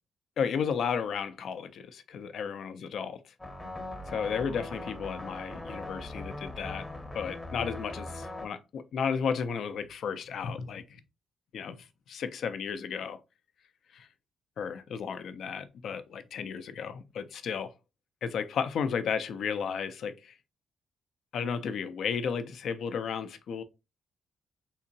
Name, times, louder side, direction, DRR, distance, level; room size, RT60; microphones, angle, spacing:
voice 1, 0.4-3.2 4.1-6.9 7.1-11.0 11.5-13.2 13.9-14.1 14.6-17.7 18.2-20.3 21.3-23.6, left 6 dB, 70° left, 0.4 m, -33 dB
sound 1, 3.4-8.5, left 1 dB, 15° left, 0.7 m, -40 dB
3.4 x 2.8 x 2.6 m
cardioid pair, 100°, 0 cm